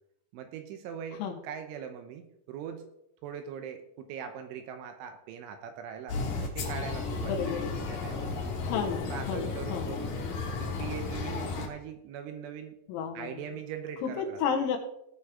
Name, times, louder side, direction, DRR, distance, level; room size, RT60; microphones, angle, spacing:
voice 1, 0.3-2.9 3.2-8.5 9.1-10.2 10.6-12.8 13.1-14.4, right 7 dB, 80° right, 7 dB, 3.1 m, -41 dB
sound 1, 6.1-11.7, left 4 dB, 55° left, 2.8 m, -34 dB
voice 2, 7.2-7.7 8.6-9.9 12.9-13.3 14.0-14.8, left 7 dB, 80° left, 3 dB, 3.9 m, -32 dB
17.5 x 6.2 x 3.7 m, 0.77 s
omnidirectional pair, 5.9 m